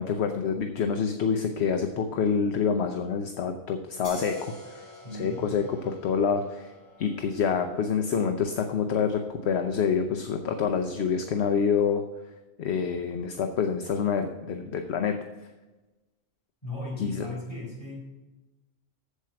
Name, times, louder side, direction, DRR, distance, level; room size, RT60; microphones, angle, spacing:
voice 1, 0.0-4.8 5.1-6.7 7.0-12.0 12.6-15.2 17.0-17.3, left 6 dB, 60° left, 5 dB, 0.9 m, -27 dB
sound 1, 4.0-11.3, left 2 dB, 45° right, 3.8 m, -48 dB
voice 2, 5.0-5.5 16.6-18.2, left 2 dB, 20° left, -5 dB, 4.2 m, -37 dB
8.3 x 7.6 x 5.7 m, 1.1 s
omnidirectional pair, 1.3 m